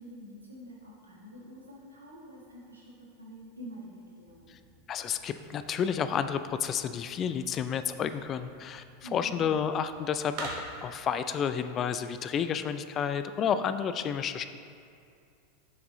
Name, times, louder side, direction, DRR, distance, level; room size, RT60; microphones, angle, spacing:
voice 1, 0.0-4.6 9.0-9.5, equal, 85° right, -4 dB, 1.4 m, -47 dB
sound 1, 4.2-11.0, right 2 dB, 50° right, 1.2 m, -47 dB
voice 2, 4.9-14.4, left 7 dB, 35° left, 11 dB, 0.3 m, -31 dB
7.3 x 6.0 x 3.1 m, 2.4 s
figure-of-eight pair, 90°, 0 cm